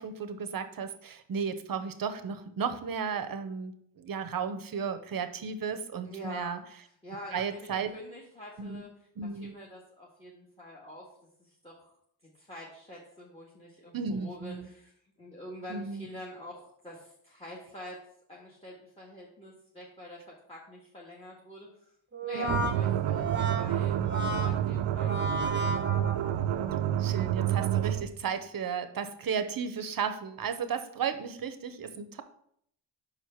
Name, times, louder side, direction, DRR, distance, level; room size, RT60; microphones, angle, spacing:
voice 1, 0.0-6.6 7.3-7.9 8.6-8.8 9.2-9.5 13.9-14.7 15.7-16.1 22.3-22.7 27.0-32.2, right 6 dB, 50° right, 9 dB, 0.9 m, -34 dB
voice 2, 6.0-6.5 7.0-8.9 9.3-11.1 11.4-11.9 12.4-14.9 15.2-18.0 18.3-20.2 20.5-21.9 22.2-25.7, equal, 15° left, -3 dB, 1.6 m, -46 dB
Brass instrument, 22.1-26.6, right 1 dB, 25° right, 1.1 m, -34 dB
sound 1, 22.5-28.1, right 11 dB, 80° right, 0.6 m, -29 dB
5.5 x 4.7 x 5.7 m, 0.69 s
cardioid pair, 90°, 45 cm